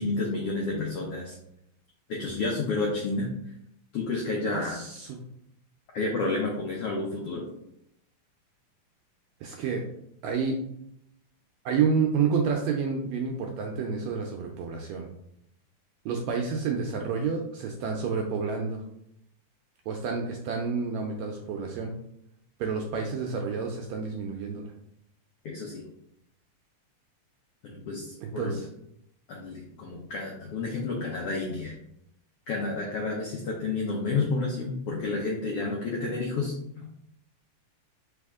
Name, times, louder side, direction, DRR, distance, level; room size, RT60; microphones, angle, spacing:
voice 1, 0.0-1.4 2.1-3.3 3.9-4.8 5.9-7.4 25.4-25.8 27.6-28.6 29.3-31.7 32.5-36.9, left 3 dB, 80° left, -1 dB, 1.3 m, -30 dB
voice 2, 4.5-5.2 9.4-9.9 10.2-10.5 11.6-15.1 16.0-18.8 19.9-21.9 22.6-24.7 28.2-28.7, right 5 dB, 80° right, 2 dB, 1.5 m, -29 dB
4.1 x 3.5 x 3.5 m, 0.76 s
omnidirectional pair, 3.5 m